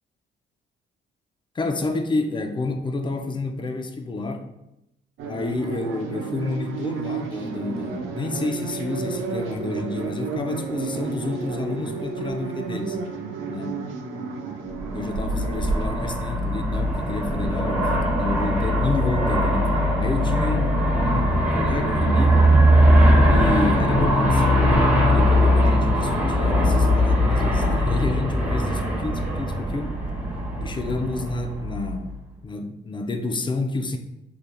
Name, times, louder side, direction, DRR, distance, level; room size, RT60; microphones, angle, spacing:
voice 1, 1.5-4.5 5.2-13.0 13.5-13.9 14.9-22.5 23.3-30.0 30.6-34.0, left 2 dB, 25° left, 0.5 m, -29 dB
sound 1, 5.2-16.0, right 5 dB, 85° right, 0.7 m, -32 dB
Aircraft, 14.9-32.1, equal, 5° right, 1.0 m, -20 dB
5.5 x 3.3 x 2.2 m
cardioid pair, 90°, 20 cm